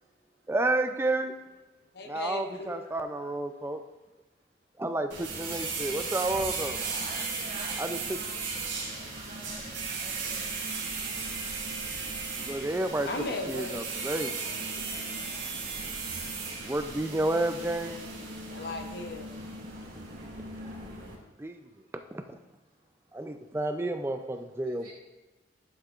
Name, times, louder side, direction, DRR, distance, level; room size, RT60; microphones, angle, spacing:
voice 1, 0.5-1.3 2.1-3.8 4.8-6.8 7.8-8.2 12.4-13.1 13.5-14.3 16.6-18.0 21.4-21.6 21.9-22.2 23.1-24.9, right 2 dB, 10° right, 7 dB, 0.3 m, -30 dB
voice 2, 1.9-2.8 13.1-14.8 18.5-19.5, left 2 dB, 50° left, 4 dB, 0.8 m, -38 dB
sound 1, 5.1-21.1, right 4 dB, 65° right, 2.5 m, -36 dB
voice 3, 6.6-10.5 11.1-12.2 24.7-24.9, right 1 dB, 50° right, -4 dB, 2.7 m, -48 dB
11.0 x 6.6 x 2.4 m, 1.1 s
head